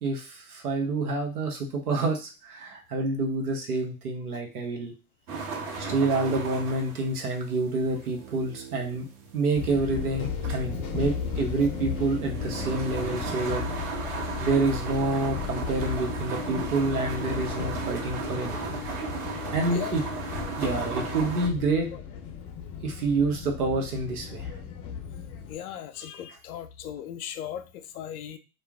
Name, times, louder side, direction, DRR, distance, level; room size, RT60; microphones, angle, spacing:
voice 1, 0.0-4.9 5.8-9.1 9.3-13.6 14.4-18.6 19.5-20.0 20.6-21.9 22.8-24.5, right 3 dB, 85° right, 2 dB, 0.9 m, -28 dB
sound 1, 5.3-21.5, right 3 dB, 55° right, 1.0 m, -35 dB
sound 2, 7.7-13.0, right 7 dB, 25° right, 0.3 m, -45 dB
sound 3, 9.5-25.6, left 7 dB, 35° left, 0.5 m, -36 dB
voice 2, 25.5-28.4, left 10 dB, 80° left, 10 dB, 0.5 m, -38 dB
2.4 x 2.0 x 3.4 m, 0.31 s
hypercardioid pair, 90°, 43 cm